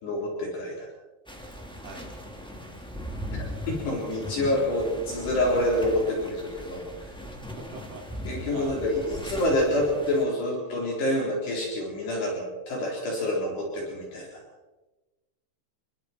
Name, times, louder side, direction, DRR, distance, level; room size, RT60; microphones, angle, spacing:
voice 1, 0.0-0.9 3.3-7.1 8.2-14.3, left 1 dB, 55° left, -3 dB, 6.1 m, -27 dB
sound 1, 1.3-10.2, equal, ahead, 1.1 m, -39 dB
voice 2, 7.6-8.0 8.5-8.8, right 4 dB, 80° right, 2 dB, 5.6 m, -41 dB
28.0 x 22.0 x 4.6 m, 1.1 s
omnidirectional pair, 5.8 m